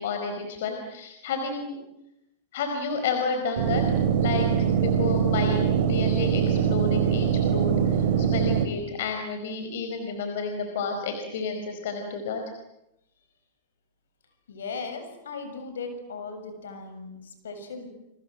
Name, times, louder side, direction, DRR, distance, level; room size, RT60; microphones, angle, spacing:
voice 1, 0.0-1.8 2.5-3.8 4.2-4.5 4.8-7.7 8.0-12.4, left 4 dB, 70° left, 5 dB, 5.0 m, -31 dB
sound 1, 3.6-8.6, right 8 dB, 65° right, 3.5 m, -23 dB
voice 2, 14.5-17.9, left 4 dB, 90° left, 7 dB, 7.4 m, -37 dB
29.0 x 25.5 x 7.7 m, 0.86 s
hypercardioid pair, 120°, 0 cm